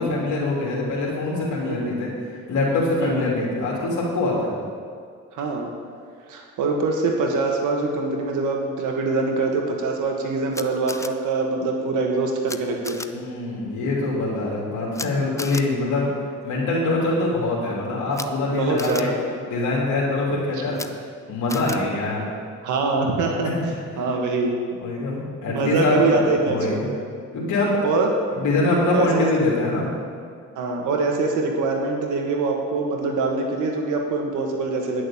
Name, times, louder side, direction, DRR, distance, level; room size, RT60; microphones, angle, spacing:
voice 1, 0.0-2.1 2.5-4.5 13.1-16.1 16.4-19.1 19.5-20.8 21.3-22.3 23.4-23.5 24.8-26.9 27.3-27.8 28.3-29.9, left 2 dB, 75° left, -5 dB, 3.0 m, -24 dB
voice 2, 5.3-5.7 6.3-13.1 18.4-19.1 20.7-20.8 22.6-23.5 24.0-24.6 25.5-27.1 27.8-28.1 28.9-29.3 30.6-35.0, right 3 dB, 85° right, 1 dB, 1.7 m, -24 dB
Camera, 10.5-11.1 12.5-12.6 12.8-13.1 14.9-15.1 15.4-15.6 18.1-18.3 18.8-19.0 20.7-20.9 21.5-21.8, left 2 dB, 10° left, 0.6 m, -33 dB
11.0 x 6.4 x 8.6 m, 2.1 s
cardioid pair, 90°, 30 cm